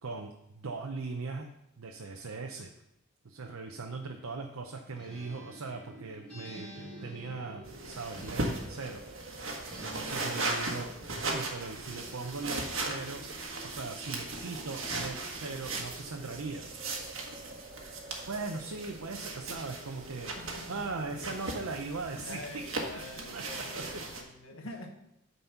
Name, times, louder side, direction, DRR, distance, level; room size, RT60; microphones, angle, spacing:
voice 1, 0.0-1.5 1.8-2.7 3.2-9.0 9.8-10.9 11.2-13.2 13.6-16.7 18.3-20.3 20.7-24.4, right 3 dB, 90° right, 3 dB, 0.7 m, -39 dB
Acoustic guitar, 5.0-9.1 9.7-11.2, right 1 dB, 5° left, 3.1 m, -49 dB
sound 1, 5.1-21.3, right 1 dB, 40° right, 1.4 m, -52 dB
sound 2, 7.6-24.2, right 2 dB, 65° right, 1.4 m, -38 dB
voice 2, 20.4-20.8 21.1-21.4 22.2-24.9, left 2 dB, 80° left, 4 dB, 1.2 m, -46 dB
9.1 x 4.1 x 5.7 m, 0.83 s
head